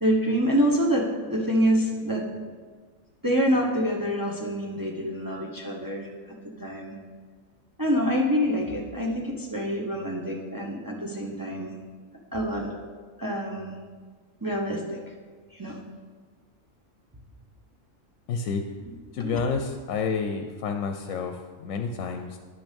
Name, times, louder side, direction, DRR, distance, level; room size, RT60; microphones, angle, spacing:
voice 1, 0.0-2.5 3.2-6.9 7.8-11.8 12.3-12.7 13.2-13.8 14.4-15.1 15.5-15.8 19.2-19.4, equal, 15° right, -1 dB, 0.9 m, -26 dB
voice 2, 18.3-18.6 19.1-22.4, left 5 dB, 70° left, 6 dB, 1.0 m, -29 dB
9.8 x 6.0 x 5.2 m, 1.5 s
omnidirectional pair, 1.4 m